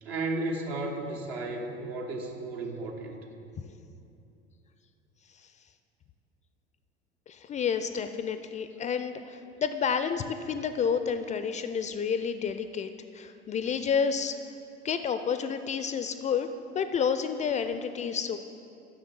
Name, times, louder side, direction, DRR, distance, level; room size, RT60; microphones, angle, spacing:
voice 1, 0.0-3.2, right 2 dB, 75° right, 1 dB, 1.2 m, -34 dB
voice 2, 7.3-14.4 14.8-16.5 16.7-18.4, left 6 dB, 25° left, 10 dB, 0.3 m, -30 dB
6.6 x 6.2 x 7.4 m, 2.7 s
figure-of-eight pair, 70°, 31 cm